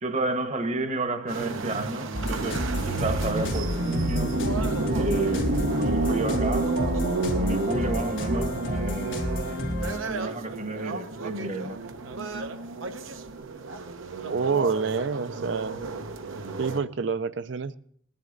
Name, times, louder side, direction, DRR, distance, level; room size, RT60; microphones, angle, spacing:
voice 1, 0.0-4.4 4.9-6.8 7.4-9.6 10.0-11.8, right 2 dB, 35° right, 1.0 m, -31 dB
sound 1, 1.3-16.8, right 2 dB, 85° right, 0.9 m, -30 dB
sound 2, 2.1-10.0, left 1 dB, 80° left, 2.8 m, -31 dB
voice 2, 14.3-15.8 16.6-17.8, right 5 dB, 60° right, 0.5 m, -27 dB
19.5 x 10.5 x 3.9 m
head